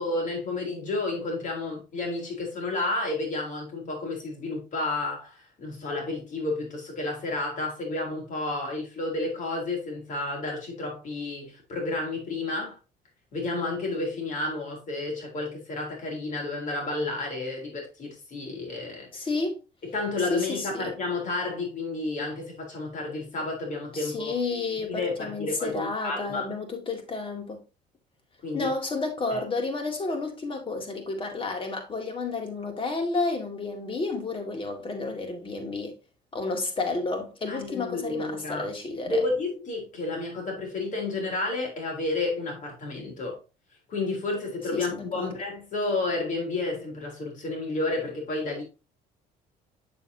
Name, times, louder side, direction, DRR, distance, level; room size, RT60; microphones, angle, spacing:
voice 1, 0.0-12.8 13.3-19.1 19.9-24.3 24.9-26.5 28.4-28.7 29.3-29.4 37.5-38.7 39.0-43.4 43.9-48.6, left 2 dB, 50° left, 3.4 m, -31 dB
voice 2, 19.1-19.6 20.3-20.9 23.9-27.6 28.5-35.9 36.3-39.2 44.7-45.3, left 3 dB, 30° left, 2.1 m, -31 dB
7.1 x 6.9 x 2.7 m
cardioid pair, 110°, 17 cm